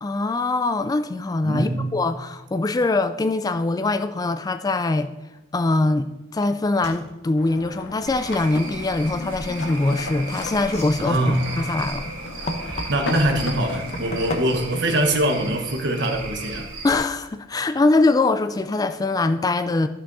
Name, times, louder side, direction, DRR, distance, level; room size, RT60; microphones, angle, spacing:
voice 1, 0.0-5.1 5.5-11.2 11.6-12.0 16.8-19.9, left 2 dB, 20° left, 0.3 m, -22 dB
voice 2, 1.4-1.9 11.0-11.4 12.7-16.7, right 1 dB, 60° right, 1.2 m, -23 dB
sound 1, 6.4-6.5 6.8-7.1 9.5-10.0 10.6-13.2 13.8-14.8, left 1 dB, 35° left, 1.0 m, -34 dB
sound 2, 7.4-14.3, left 2 dB, 65° left, 1.0 m, -36 dB
Cricket / Frog, 8.1-17.0, right 3 dB, 85° right, 2.9 m, -36 dB
13.0 x 6.1 x 4.0 m
head